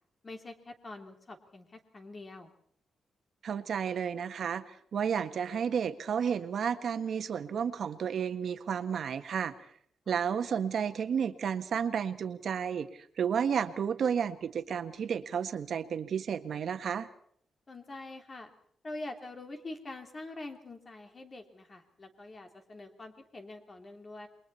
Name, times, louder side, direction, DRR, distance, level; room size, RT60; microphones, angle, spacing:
voice 1, 0.2-2.5 10.0-10.1 17.7-18.5 18.8-24.3, left 2 dB, 30° left, 5 dB, 3.1 m, -45 dB
voice 2, 3.4-9.5 10.1-17.1, right 7 dB, 60° right, 9 dB, 1.6 m, -32 dB
28.5 x 22.5 x 4.4 m, 0.63 s
wide cardioid pair, 135°, 0 cm